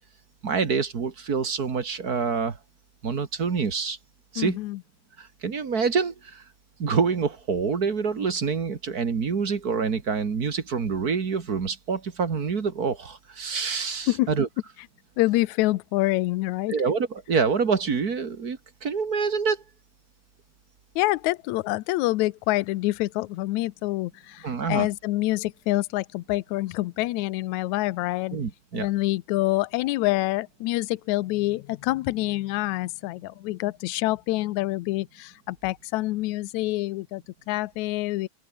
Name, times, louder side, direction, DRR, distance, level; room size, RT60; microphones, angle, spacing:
voice 1, 0.4-2.6 3.0-4.0 4.3-4.6 5.2-6.4 6.8-14.5 16.7-19.6 24.4-24.9 28.3-28.9, right 5 dB, 35° right, 1.9 m, -26 dB
voice 2, 4.4-4.8 14.1-14.3 15.2-16.8 21.0-28.4 28.7-38.3, left 18 dB, 75° left, 2.0 m, -26 dB
open air
omnidirectional pair, 3.4 m